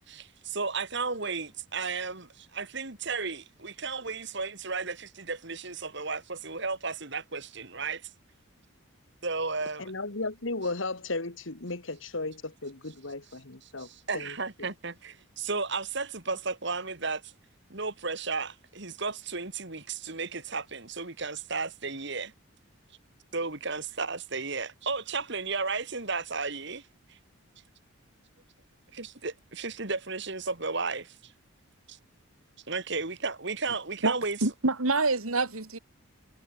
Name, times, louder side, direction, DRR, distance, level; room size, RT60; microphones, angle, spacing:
voice 1, 0.1-8.1 9.2-9.9 13.8-17.3 17.7-22.3 23.3-27.2 28.9-31.3 31.9-32.0 32.7-34.4, right 4 dB, 55° right, 2.6 m, -34 dB
voice 2, 9.8-13.9 14.1-14.7, left 2 dB, 65° left, 1.9 m, -35 dB
voice 3, 34.4-35.8, right 3 dB, 85° right, 2.6 m, -26 dB
head